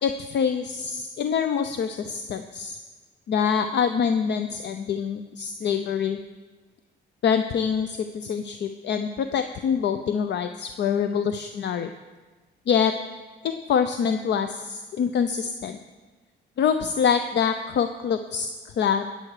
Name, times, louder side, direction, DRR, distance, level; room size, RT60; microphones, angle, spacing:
voice 1, 0.0-2.8 3.3-6.2 7.2-11.9 12.7-12.9 13.4-15.8 16.6-18.5 18.8-19.1, left 7 dB, 60° left, 9 dB, 0.6 m, -25 dB
18.5 x 7.8 x 4.9 m, 1.3 s
cardioid pair, 90°, 20 cm